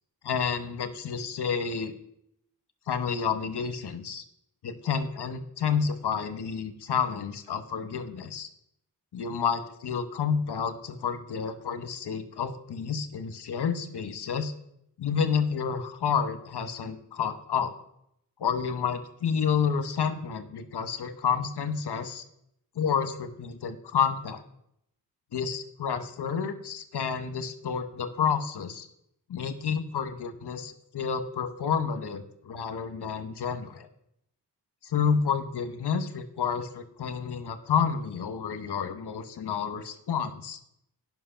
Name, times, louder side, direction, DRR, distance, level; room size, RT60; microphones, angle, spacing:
voice 1, 0.2-1.9 2.9-4.2 4.6-8.5 9.1-14.5 15.0-17.7 18.4-22.2 22.7-24.4 25.3-28.9 29.3-33.9 34.8-40.6, left 6 dB, 70° left, 9 dB, 1.1 m, -30 dB
9.5 x 5.9 x 5.7 m, 0.75 s
cardioid pair, 50°, 42 cm